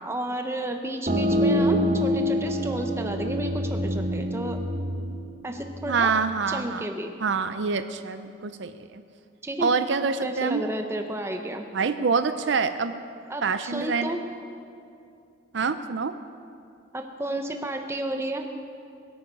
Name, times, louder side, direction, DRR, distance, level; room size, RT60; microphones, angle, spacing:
voice 1, 0.0-4.6 5.4-6.1 6.5-7.1 9.4-11.6 13.3-14.2 16.9-18.5, right 1 dB, 15° right, 5 dB, 0.9 m, -32 dB
sound 1, 1.1-6.5, equal, 35° right, 0.9 m, -26 dB
voice 2, 5.9-6.9 7.2-9.0 9.6-10.6 11.7-12.9 13.4-14.2 15.5-16.1, right 5 dB, 65° right, 10 dB, 0.5 m, -26 dB
22.0 x 8.7 x 5.4 m, 2.5 s
head